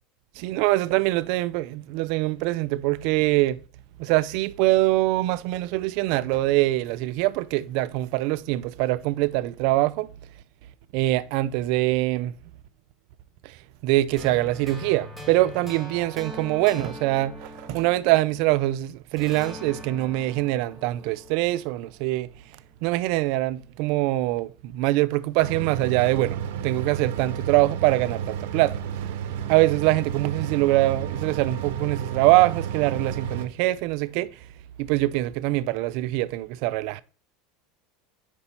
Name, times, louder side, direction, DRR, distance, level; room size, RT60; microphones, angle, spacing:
voice 1, 0.4-3.6 4.0-10.1 10.9-12.3 13.4-13.6 13.8-22.3 22.8-26.4 26.6-28.8 29.5-34.3 34.8-37.0, right 18 dB, 55° right, 0.4 m, -23 dB
sound 1, 14.2-18.7 19.2-22.2, left 1 dB, 5° left, 1.1 m, -42 dB
sound 2, 25.4-33.5, right 8 dB, 85° right, 0.8 m, -31 dB
5.3 x 4.3 x 5.4 m
supercardioid pair, 165°, 0 cm